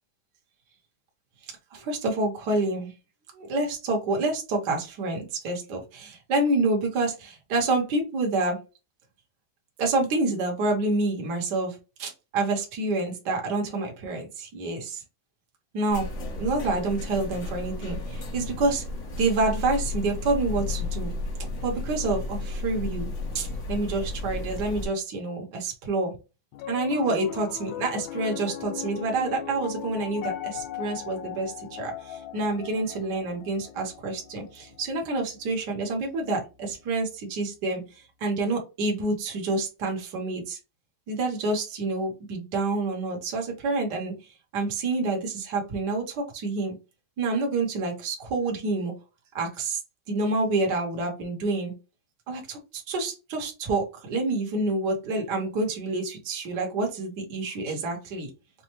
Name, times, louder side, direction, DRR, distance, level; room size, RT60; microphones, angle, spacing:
voice 1, 1.4-2.9 3.3-8.6 9.8-15.0 15.7-16.1 16.4-18.8 19.2-21.1 21.6-23.1 23.3-26.1 26.7-40.6 41.1-46.7 47.2-48.9 49.3-49.8 50.1-51.7 52.3-58.3, right 2 dB, 60° right, 1 dB, 1.6 m, -28 dB
sound 1, 15.9-24.9, left 2 dB, 45° left, 1.2 m, -33 dB
Piano, 26.5-36.9, left 11 dB, 75° left, 1.3 m, -39 dB
5.4 x 2.1 x 3.0 m, 0.28 s
omnidirectional pair, 2.2 m